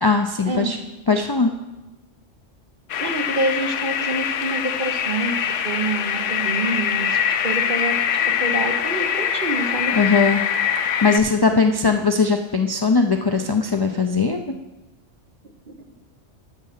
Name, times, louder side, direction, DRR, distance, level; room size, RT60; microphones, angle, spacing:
voice 1, 0.0-0.8 1.1-1.5 9.9-10.4 11.0-14.4, left 4 dB, 40° left, 5 dB, 0.3 m, -19 dB
sound 1, 2.9-11.2, left 8 dB, 80° left, 1.0 m, -23 dB
voice 2, 3.0-5.3 5.6-7.1 7.4-7.9 8.2-9.9 15.7-15.8, right 2 dB, 45° right, 5 dB, 1.0 m, -26 dB
11.0 x 6.5 x 5.8 m, 1.1 s
omnidirectional pair, 1.2 m